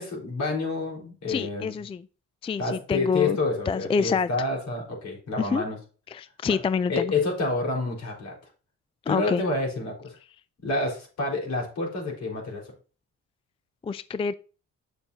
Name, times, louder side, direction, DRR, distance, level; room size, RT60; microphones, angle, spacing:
voice 1, 0.0-1.8 2.6-5.8 6.5-6.6 6.9-8.4 9.1-10.2 10.6-12.7, left 3 dB, 65° left, 4.5 m, -28 dB
voice 2, 1.3-2.0 2.4-3.4 3.7-4.3 5.4-5.6 6.1-7.1 9.1-9.4 13.8-14.3, left 5 dB, 20° left, 0.3 m, -26 dB
8.8 x 7.0 x 2.8 m
cardioid pair, 90°, 30 cm